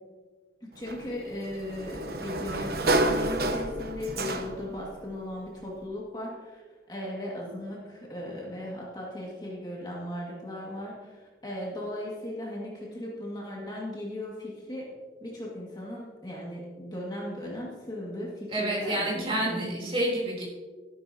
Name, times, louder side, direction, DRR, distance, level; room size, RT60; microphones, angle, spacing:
voice 1, 0.6-6.6 6.9-14.9 15.2-19.9, left 1 dB, 25° left, -4 dB, 2.1 m, -37 dB
Sliding door, 0.9-4.8, right 2 dB, 55° right, 0.9 m, -29 dB
voice 2, 18.5-20.4, right 1 dB, 30° right, -4 dB, 3.6 m, -29 dB
13.0 x 11.5 x 2.9 m, 1.4 s
head